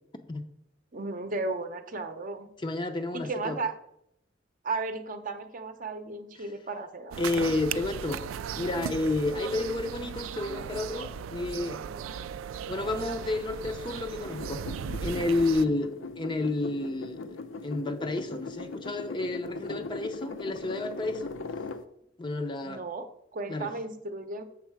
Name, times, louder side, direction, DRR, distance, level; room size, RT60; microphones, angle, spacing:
voice 1, 0.9-2.5 3.1-3.7 4.6-7.2 22.6-24.4, right 3 dB, 40° right, 7 dB, 0.7 m, -34 dB
voice 2, 2.6-3.6 7.2-8.2 8.5-11.8 12.7-14.6 15.0-15.9 16.2-17.3 17.6-21.3 22.2-22.8 23.5-23.7, left 2 dB, 25° left, 7 dB, 0.5 m, -30 dB
sound 1, 7.1-15.6, right 7 dB, 90° right, 0.3 m, -37 dB
sound 2, 14.2-21.8, left 3 dB, 75° left, 0.6 m, -39 dB
7.3 x 6.5 x 4.6 m, 0.75 s
head